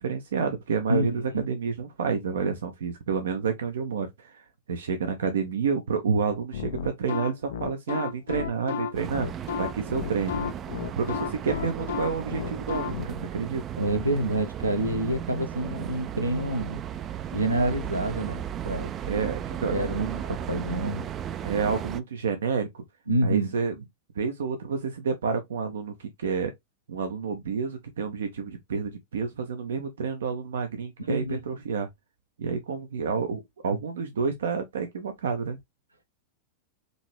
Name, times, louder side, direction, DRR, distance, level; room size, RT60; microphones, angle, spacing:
voice 1, 0.0-9.3 9.6-10.4 11.0-13.6 19.0-19.7 20.0-20.3 21.4-22.7 23.2-23.7 24.2-26.5 26.9-31.9 32.4-35.6, right 5 dB, 65° right, 0.7 m, -29 dB
sound 1, 6.5-13.1, left 7 dB, 60° left, 0.5 m, -32 dB
sound 2, 8.9-22.0, right 9 dB, 30° right, 0.4 m, -35 dB
voice 2, 13.8-16.8 17.3-18.9 19.7-21.1 23.1-23.5 31.1-31.4, right 1 dB, 85° right, 1.0 m, -27 dB
5.2 x 2.9 x 3.1 m
figure-of-eight pair, 90°, 0 cm